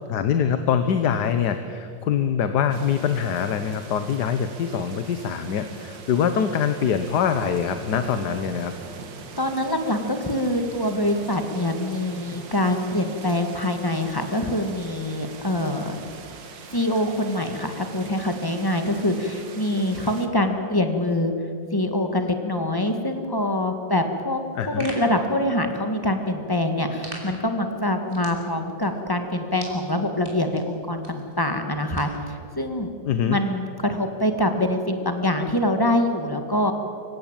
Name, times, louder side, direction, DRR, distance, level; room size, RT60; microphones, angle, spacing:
voice 1, 0.1-8.8 24.6-24.9 33.0-33.4, left 7 dB, 65° left, 9 dB, 1.5 m, -24 dB
sound 1, 2.7-20.3, right 5 dB, 80° right, 2.3 m, -42 dB
voice 2, 9.4-16.0 16.7-21.3 21.7-24.4 24.7-32.9 33.3-34.8 35.0-36.7, left 1 dB, 10° left, 6 dB, 1.7 m, -24 dB
sound 2, 24.4-32.3, right 1 dB, 30° right, 4.5 m, -45 dB
25.5 x 16.0 x 9.0 m, 2.5 s
omnidirectional pair, 2.0 m